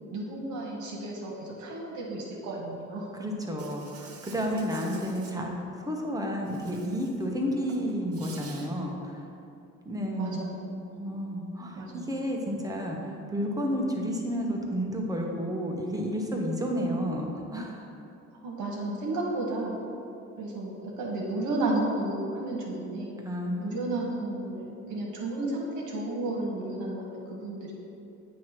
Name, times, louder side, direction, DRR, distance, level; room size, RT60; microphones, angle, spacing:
voice 1, 0.1-3.1 10.1-10.8 11.7-12.1 18.3-19.8 20.4-23.1 23.6-27.8, right 2 dB, 80° right, -3 dB, 1.2 m, -33 dB
voice 2, 3.1-9.3 9.8-10.4 10.9-17.9 23.2-23.9, equal, 10° right, -1 dB, 1.1 m, -31 dB
Insect, 3.6-5.3 6.5-7.3 7.6-8.7, right 5 dB, 50° right, 0.9 m, -49 dB
8.4 x 3.1 x 5.9 m, 2.7 s
cardioid pair, 90°, 30 cm